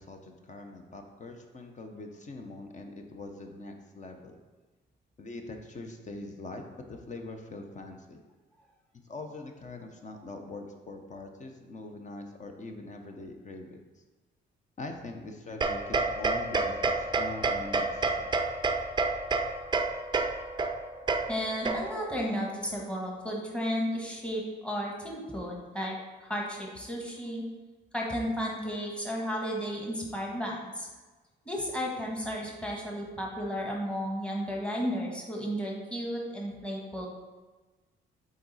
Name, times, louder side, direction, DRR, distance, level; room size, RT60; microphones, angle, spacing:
voice 1, 0.0-4.4 5.2-8.2 8.9-13.8 14.8-18.4, left 2 dB, 35° left, 4 dB, 0.8 m, -43 dB
sound 1, 15.6-22.2, right 3 dB, 20° right, 0.5 m, -29 dB
voice 2, 21.3-27.4 27.9-30.9 31.4-37.1, equal, 5° left, -2 dB, 1.5 m, -33 dB
7.6 x 4.0 x 4.1 m, 1.3 s
cardioid pair, 90°, 20 cm